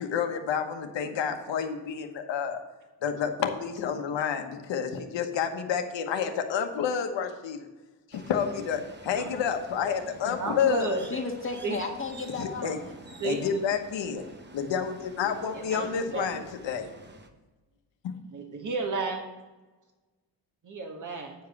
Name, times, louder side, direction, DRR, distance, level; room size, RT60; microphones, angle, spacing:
voice 1, 0.0-2.6 3.0-7.7 8.1-11.0 12.4-12.8 13.2-16.9 18.0-18.1, left 7 dB, 75° left, 6 dB, 1.2 m, -29 dB
sound 1, 8.1-17.3, right 2 dB, 25° right, 1.0 m, -50 dB
voice 2, 10.4-11.0 11.6-11.8 13.2-13.5 15.5-16.4 18.3-19.2 20.6-21.3, right 3 dB, 45° right, 2 dB, 1.7 m, -32 dB
voice 3, 11.1-12.9 13.4-13.5, left 3 dB, 25° left, 1 dB, 1.6 m, -34 dB
9.0 x 4.9 x 7.1 m, 1.2 s
cardioid pair, 80°, 44 cm